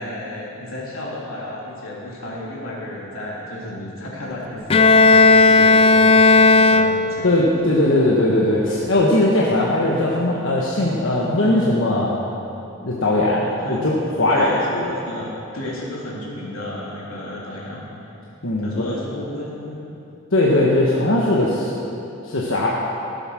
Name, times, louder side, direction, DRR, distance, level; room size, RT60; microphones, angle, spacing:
voice 1, 0.0-7.3 13.4-13.9 14.3-15.3 15.5-18.1 18.6-19.9, left 1 dB, 85° left, -5 dB, 3.2 m, -32 dB
Bowed string instrument, 4.7-7.4, left 3 dB, 30° left, 0.4 m, -13 dB
voice 2, 7.2-12.2 12.8-14.8 18.4-18.9 20.3-21.7 22.2-22.7, left 1 dB, 65° left, -5 dB, 1.3 m, -19 dB
15.0 x 8.1 x 6.3 m, 2.9 s
head